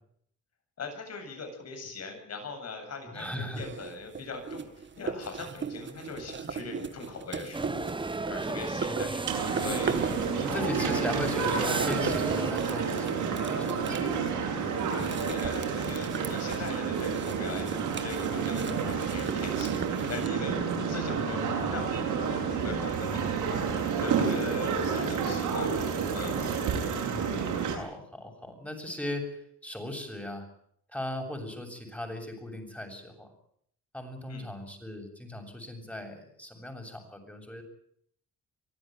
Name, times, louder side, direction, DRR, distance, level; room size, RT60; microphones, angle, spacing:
voice 1, 0.8-11.2 15.0-25.9 26.1-26.5 34.3-34.5, left 3 dB, 55° left, 5 dB, 8.0 m, -41 dB
voice 2, 3.1-3.6 8.8-9.2 10.4-14.3 21.0-21.6 24.4-24.6 27.1-30.5 30.9-33.3 33.9-37.6, left 1 dB, 5° left, 4 dB, 7.7 m, -38 dB
sound 1, 3.5-20.3, right 5 dB, 40° right, 1.9 m, -39 dB
sound 2, 7.5-12.5, right 3 dB, 15° right, 1.2 m, -34 dB
sound 3, 9.3-27.8, right 6 dB, 85° right, 7.9 m, -30 dB
24.5 x 15.5 x 9.5 m, 0.67 s
cardioid pair, 90°, 30 cm